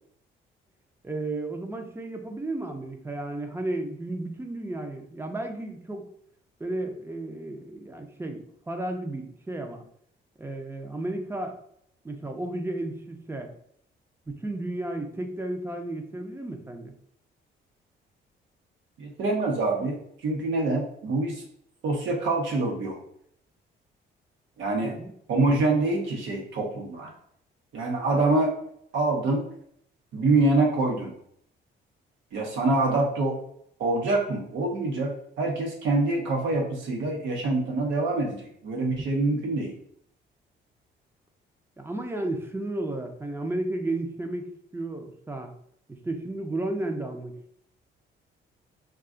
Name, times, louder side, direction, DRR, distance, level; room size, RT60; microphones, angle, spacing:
voice 1, 1.0-6.1 6.6-9.8 10.4-11.6 12.0-13.5 14.3-16.9 24.8-25.1 41.8-45.5 45.9-47.6, right 2 dB, 10° right, 4 dB, 0.5 m, -33 dB
voice 2, 19.0-20.0 20.2-21.4 21.8-23.0 24.6-24.9 25.3-27.1 27.7-28.5 28.9-29.4 30.1-31.1 32.3-33.4 33.8-35.1 35.4-39.7, right 2 dB, 75° right, 1 dB, 0.9 m, -25 dB
2.3 x 2.3 x 3.7 m, 0.68 s
cardioid pair, 90°, 20 cm